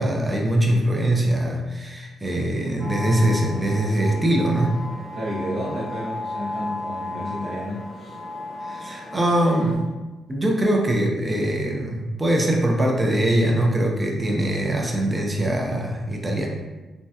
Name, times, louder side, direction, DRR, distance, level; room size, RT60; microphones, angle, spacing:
voice 1, 0.0-4.8 8.6-9.9 10.3-16.5, right 1 dB, 15° right, 0 dB, 0.4 m, -22 dB
sound 1, 2.8-9.7, left 2 dB, 30° left, 0.8 m, -34 dB
voice 2, 5.1-8.2, equal, 55° right, -10 dB, 0.7 m, -31 dB
3.4 x 2.1 x 2.7 m, 1.2 s
cardioid pair, 135°, 0 cm